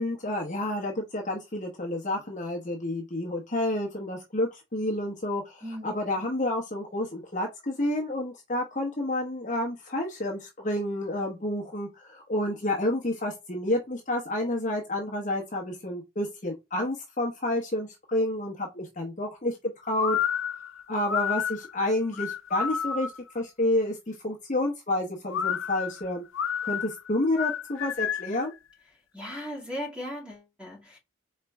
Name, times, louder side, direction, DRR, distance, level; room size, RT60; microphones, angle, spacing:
voice 1, 0.0-19.6 19.9-20.2 20.9-26.2 26.6-28.5, left 1 dB, 35° left, 0.9 m, -29 dB
voice 2, 5.6-5.9 29.1-31.0, equal, 5° right, 2.1 m, -37 dB
sound 1, 20.0-23.3 25.3-28.4, left 8 dB, 75° left, 0.5 m, -30 dB
4.3 x 3.2 x 3.5 m
head